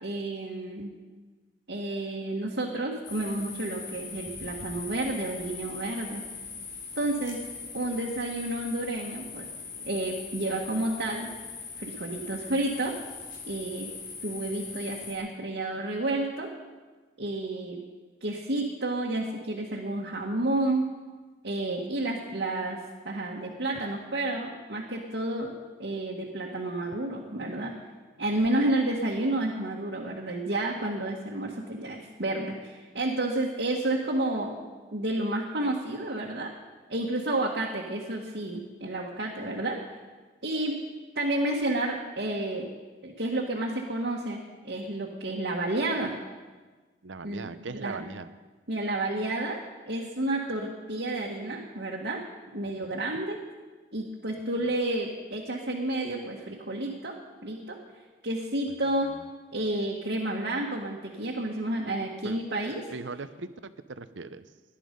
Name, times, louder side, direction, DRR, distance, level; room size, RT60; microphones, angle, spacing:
voice 1, 0.0-0.9 1.7-6.2 6.9-7.4 7.7-9.5 9.8-11.3 11.8-12.9 13.5-13.9 14.2-16.5 17.2-17.8 18.2-20.8 21.4-22.8 23.0-27.7 28.2-34.6 34.9-36.5 36.9-39.8 40.4-40.8 41.1-42.7 43.0-46.1 47.2-48.1 48.7-49.6 49.9-52.2 52.5-53.4 53.9-57.1 57.4-57.8 58.2-59.1 59.5-62.8, right 2 dB, 70° right, -2 dB, 1.6 m, -30 dB
sound 1, 3.0-15.1, left 5 dB, 75° left, 3.3 m, -41 dB
voice 2, 47.0-48.3 52.8-53.0 62.2-62.4 62.9-64.4, right 3 dB, 85° right, 13 dB, 0.8 m, -39 dB
18.0 x 11.5 x 5.3 m, 1.3 s
head